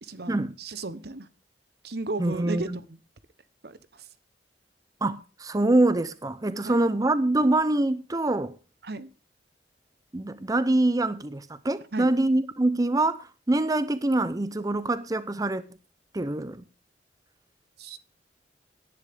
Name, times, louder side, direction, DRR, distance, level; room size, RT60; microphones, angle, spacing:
voice 1, 0.0-1.3 1.8-3.0 3.6-4.1 6.6-6.8 8.8-9.1 11.9-12.1 17.8-18.0, right 3 dB, 65° right, 1.1 m, -35 dB
voice 2, 2.2-2.6 5.0-8.5 10.1-15.6 16.1-16.6, right 2 dB, 20° right, 0.6 m, -25 dB
18.0 x 10.5 x 3.6 m
head